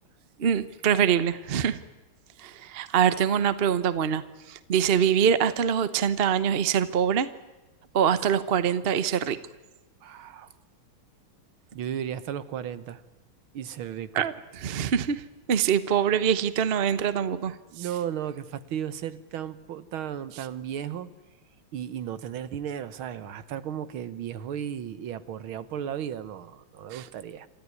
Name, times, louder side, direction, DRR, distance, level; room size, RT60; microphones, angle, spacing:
voice 1, 0.4-1.8 2.4-4.2 4.5-7.3 7.9-9.4 14.1-15.2 15.5-17.5 26.9-27.0, right 8 dB, 45° right, 14 dB, 0.7 m, -24 dB
voice 2, 10.0-10.5 11.7-13.0 13.5-14.3 17.7-21.1 21.7-27.5, right 9 dB, 75° right, 14 dB, 1.8 m, -35 dB
27.5 x 14.0 x 9.6 m, 1.1 s
omnidirectional pair, 2.4 m